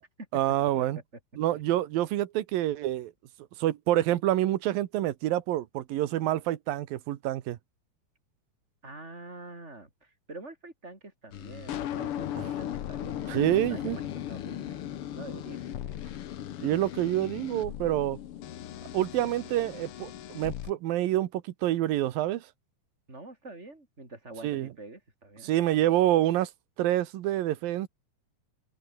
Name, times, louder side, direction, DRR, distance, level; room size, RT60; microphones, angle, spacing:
voice 1, 0.3-1.0 1.4-3.1 3.6-7.6 12.4-12.5 13.3-14.0 16.6-18.2 18.9-22.5 24.4-24.7 25.4-26.5 26.8-27.9, right 14 dB, 90° right, 3.0 m, -27 dB
voice 2, 8.8-14.8 15.1-16.0 23.1-25.5, right 2 dB, 20° right, 6.0 m, -46 dB
sound 1, 11.3-20.7, left 11 dB, 65° left, 1.4 m, -37 dB
omnidirectional pair, 4.0 m